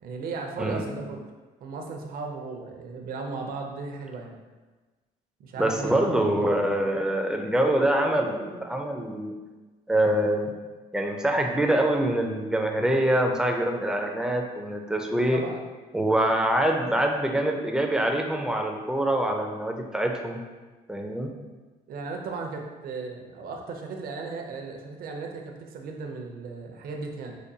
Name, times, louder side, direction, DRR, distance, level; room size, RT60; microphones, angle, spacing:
voice 1, 0.0-1.3 1.6-4.4 5.4-6.2 15.3-15.7 21.3-21.4 21.9-27.4, right 4 dB, 60° right, 2 dB, 0.6 m, -36 dB
voice 2, 5.6-9.3 9.9-10.5 10.9-15.4 15.9-20.4 20.9-21.3, right 1 dB, 5° right, 2 dB, 0.4 m, -25 dB
5.0 x 2.2 x 2.7 m, 1.3 s
cardioid pair, 110°, 17 cm